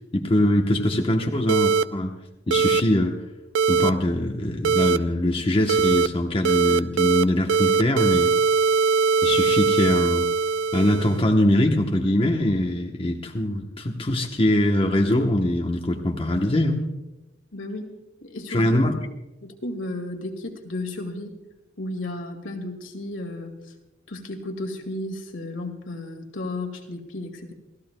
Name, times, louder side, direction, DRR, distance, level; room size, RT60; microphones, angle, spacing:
voice 1, 0.1-2.1 2.5-3.1 3.7-8.3 9.2-10.3 10.7-16.8 18.5-19.0, left 1 dB, 30° left, 1 dB, 1.0 m, -22 dB
sound 1, 1.5-1.8 2.5-2.8 3.5-3.9 4.6-5.0 5.7-6.1 6.4-7.2 7.5-11.2, right 5 dB, 85° right, 0.4 m, -21 dB
voice 2, 17.5-17.9 18.2-18.7 19.4-21.4 21.8-23.5 24.1-27.5, left 2 dB, 70° left, 3 dB, 2.1 m, -33 dB
29.0 x 15.0 x 2.2 m, 1.0 s
head